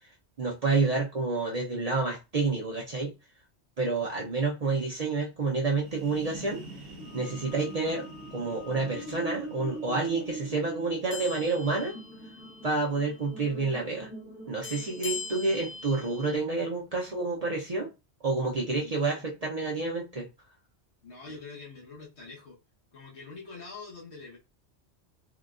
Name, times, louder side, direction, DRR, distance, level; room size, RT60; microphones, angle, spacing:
voice 1, 0.4-3.1 3.8-6.6 7.1-8.0 8.3-11.9 12.6-14.1 14.5-17.9 18.2-20.3, right 3 dB, 45° right, -2 dB, 0.6 m, -29 dB
sound 1, 5.7-13.3, right 2 dB, 60° right, 0.9 m, -48 dB
sound 2, 6.8-16.2, right 2 dB, 60° left, 1.9 m, -44 dB
sound 3, 11.1-12.8 13.0-13.3 14.6-16.4, left 5 dB, 35° left, 0.6 m, -41 dB
voice 2, 18.7-19.3 21.0-22.6 22.9-24.4, left 4 dB, 75° left, -3 dB, 1.5 m, -45 dB
3.7 x 2.2 x 2.4 m, 0.26 s
omnidirectional pair, 1.1 m